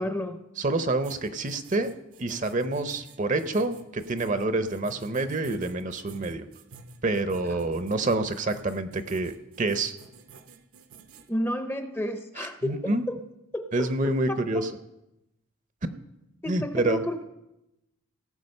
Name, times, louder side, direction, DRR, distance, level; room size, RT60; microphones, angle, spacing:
voice 1, 0.0-0.4 11.3-13.2 13.5-13.9 14.3-14.7 16.4-17.2, left 1 dB, 10° left, 8 dB, 0.6 m, -31 dB
voice 2, 0.6-1.9 2.2-6.4 7.0-9.3 9.6-9.9 12.4-13.0 13.7-14.7 16.5-17.0, right 2 dB, 35° right, 10 dB, 0.6 m, -27 dB
sound 1, 1.0-11.3, right 4 dB, 80° right, 0.9 m, -50 dB
17.5 x 7.2 x 5.4 m, 0.92 s
head